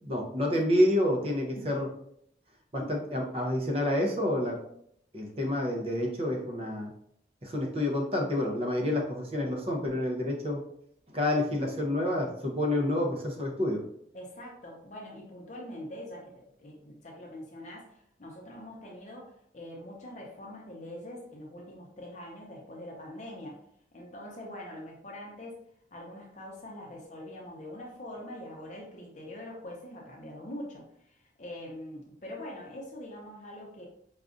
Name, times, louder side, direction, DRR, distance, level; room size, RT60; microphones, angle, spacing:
voice 1, 0.0-1.9 2.7-4.6 5.1-6.9 7.4-10.6 11.1-13.8, left 1 dB, 35° right, 0 dB, 0.6 m, -28 dB
voice 2, 14.1-23.6 23.9-25.6 25.9-33.9, left 1 dB, 40° left, -2 dB, 0.6 m, -43 dB
4.9 x 2.3 x 2.5 m, 0.71 s
head